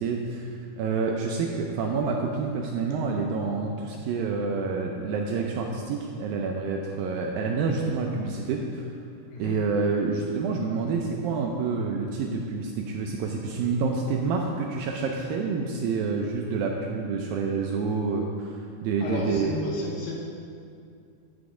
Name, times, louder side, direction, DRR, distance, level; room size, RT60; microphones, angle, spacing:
voice 1, 0.0-8.8 9.4-19.6, right 4 dB, 80° right, 1 dB, 2.1 m, -28 dB
voice 2, 19.0-20.2, left 2 dB, 70° left, -2 dB, 2.7 m, -33 dB
10.5 x 8.2 x 4.9 m, 2.4 s
omnidirectional pair, 4.7 m